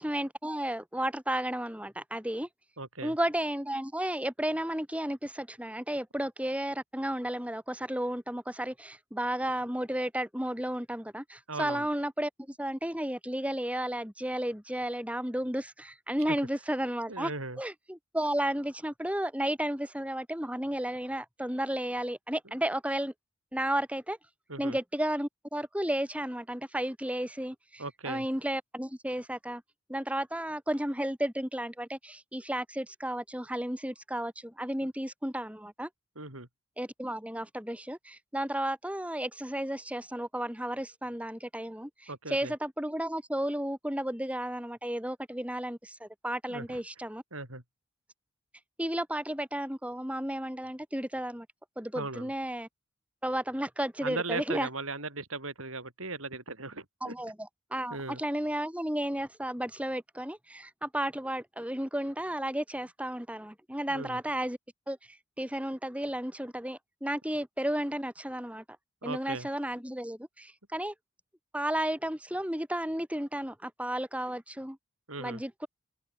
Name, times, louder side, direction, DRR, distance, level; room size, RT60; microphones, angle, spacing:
voice 1, 0.0-2.5 3.0-17.3 17.6-23.1 23.5-24.2 24.6-29.6 29.9-35.9 36.8-47.2 48.8-51.5 51.8-52.7 53.2-54.7 57.0-64.6 64.9-68.6 69.0-70.9 71.5-74.8 75.2-75.7, right 1 dB, 5° right, 5.2 m, -33 dB
voice 2, 2.8-3.2 11.5-11.9 17.1-17.6 24.5-24.8 27.8-28.3 36.2-36.5 42.1-42.5 46.5-46.8 47.3-47.6 51.9-52.3 54.0-57.1 57.9-58.2 63.9-64.2 69.0-69.5 75.1-75.4, right 3 dB, 75° right, 7.3 m, -38 dB
head